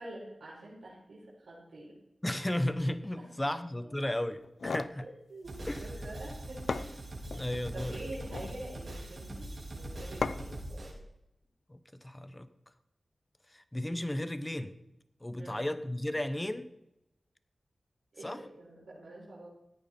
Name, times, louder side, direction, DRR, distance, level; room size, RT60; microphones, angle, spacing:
voice 1, 0.0-1.9 3.1-3.5 3.8-3.9 5.0-6.9 7.7-10.6 15.4-15.7 18.1-19.5, right 1 dB, 85° right, -7 dB, 4.6 m, -46 dB
voice 2, 2.2-5.0 5.6-5.9 7.3-8.0 11.7-12.5 13.5-14.8 15.2-16.7 18.2-18.4, left 1 dB, 20° left, 12 dB, 1.1 m, -34 dB
sound 1, 4.4-5.0 6.2-6.3 6.7-7.5 8.1-8.6 10.2-10.6, left 4 dB, 80° left, 0.5 m, -36 dB
sound 2, 5.4-10.9, right 1 dB, 60° right, 4.3 m, -42 dB
15.5 x 9.1 x 4.5 m, 0.88 s
cardioid pair, 50°, 0 cm